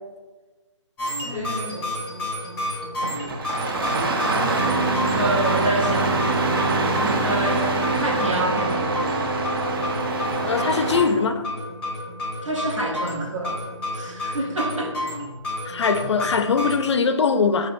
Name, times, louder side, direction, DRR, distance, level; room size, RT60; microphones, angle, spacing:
sound 1, 1.0-16.7, left 1 dB, 5° left, 0.9 m, -31 dB
voice 1, 1.2-1.9 5.1-6.2 7.0-7.7 8.0-9.0 12.4-13.6 13.9-15.0, right 2 dB, 80° right, -1 dB, 1.0 m, -27 dB
Engine starting, 3.0-11.1, right 2 dB, 50° right, 0.5 m, -24 dB
voice 2, 10.4-11.5 15.6-17.7, left 5 dB, 65° left, 9 dB, 0.4 m, -21 dB
5.6 x 2.7 x 2.5 m, 1.3 s
hypercardioid pair, 160°, 16 cm